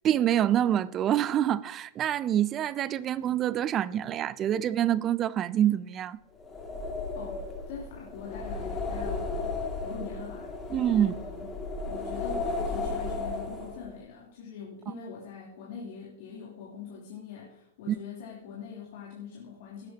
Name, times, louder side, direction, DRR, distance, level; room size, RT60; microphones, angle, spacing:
voice 1, 0.0-6.2 10.7-11.1 17.9-18.0, right 11 dB, 30° right, 0.5 m, -26 dB
sound 1, 6.4-14.0, left 3 dB, 20° left, 2.4 m, -34 dB
voice 2, 7.1-9.5 9.8-10.5 11.0-11.5 11.8-19.9, left 6 dB, 60° left, 3.4 m, -43 dB
18.5 x 8.5 x 2.9 m
hypercardioid pair, 110°, 0 cm